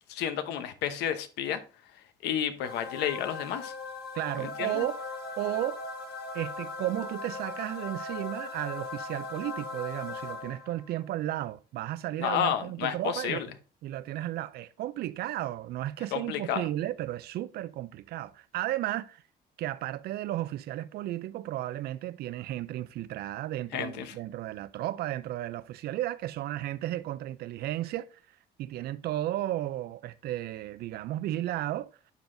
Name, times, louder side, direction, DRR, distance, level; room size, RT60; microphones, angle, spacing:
voice 1, 0.1-1.6 2.2-3.7 4.4-4.8 12.2-13.5 16.1-16.6 23.7-24.2, left 9 dB, 85° left, 0.9 m, -31 dB
sound 1, 2.6-10.9, left 3 dB, 60° left, 1.6 m, -39 dB
voice 2, 4.1-5.0 5.4-5.8 6.3-13.4 13.8-19.2 19.6-28.1 28.6-31.9, right 14 dB, 70° right, 0.5 m, -34 dB
11.5 x 3.9 x 2.6 m
cardioid pair, 110°, 17 cm